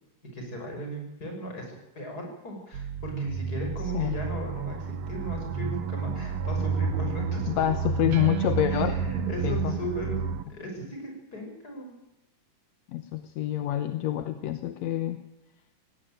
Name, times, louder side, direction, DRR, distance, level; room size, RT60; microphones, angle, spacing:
voice 1, 0.3-7.6 8.7-10.2 10.5-11.9, right 1 dB, 25° left, 2 dB, 6.4 m, -37 dB
sound 1, 2.7-10.4, right 6 dB, 60° right, 2.0 m, -30 dB
voice 2, 7.5-9.0 9.4-9.7 12.9-15.2, left 13 dB, 65° left, 10 dB, 1.9 m, -27 dB
18.0 x 17.0 x 9.1 m, 0.90 s
omnidirectional pair, 3.9 m